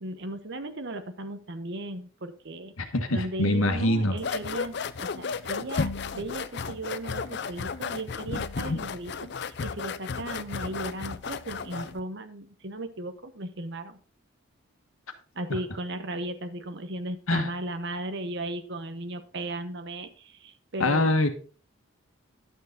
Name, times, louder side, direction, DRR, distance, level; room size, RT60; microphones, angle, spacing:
voice 1, 0.0-2.7 3.1-14.0 15.3-21.1, right 1 dB, 55° right, 9 dB, 1.0 m, -36 dB
voice 2, 2.8-4.2 17.3-17.5 20.8-21.3, left 1 dB, 80° left, 6 dB, 1.5 m, -24 dB
sound 1, 4.2-12.0, left 5 dB, 55° left, 0.5 m, -33 dB
11.0 x 6.7 x 4.0 m, 0.37 s
head